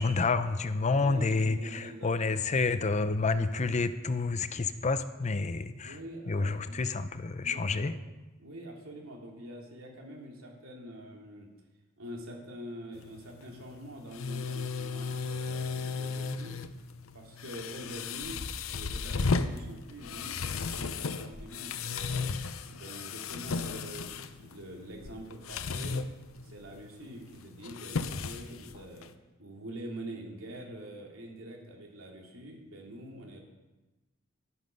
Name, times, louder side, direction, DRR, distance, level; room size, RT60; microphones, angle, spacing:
voice 1, 0.0-6.0 6.3-7.9, left 3 dB, 35° left, 12 dB, 0.5 m, -29 dB
voice 2, 0.9-2.5 5.8-6.8 7.4-7.9 8.4-11.5 12.0-16.5 17.1-18.4 18.7-22.3 22.6-26.0 26.4-29.1 29.4-33.4, right 1 dB, 85° right, 0 dB, 2.8 m, -45 dB
sound 1, 12.9-29.1, left 4 dB, 80° left, 0.7 m, -35 dB
11.5 x 11.5 x 5.4 m, 1.1 s
head